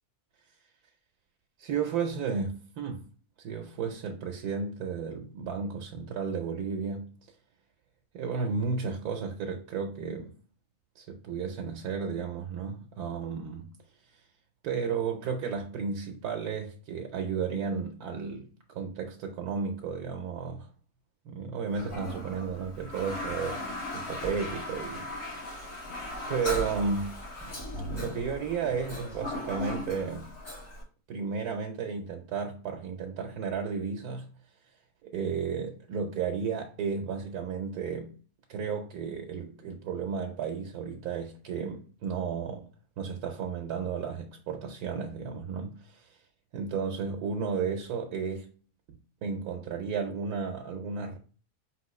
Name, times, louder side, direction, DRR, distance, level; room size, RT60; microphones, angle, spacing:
voice 1, 1.6-3.0 3.4-7.1 8.1-10.3 11.0-13.7 14.1-14.2 14.6-20.7 21.2-23.6 23.9-25.9 26.3-27.1 27.4-27.5 27.9-30.3 31.1-34.3 35.0-38.1 38.5-42.7 43.0-46.2 46.5-48.5 49.2-51.2, right 5 dB, 80° right, 1.1 m, -33 dB
Toilet flush, 21.7-30.8, left 1 dB, 85° left, 2.5 m, -37 dB
5.3 x 3.0 x 3.0 m
omnidirectional pair, 1.6 m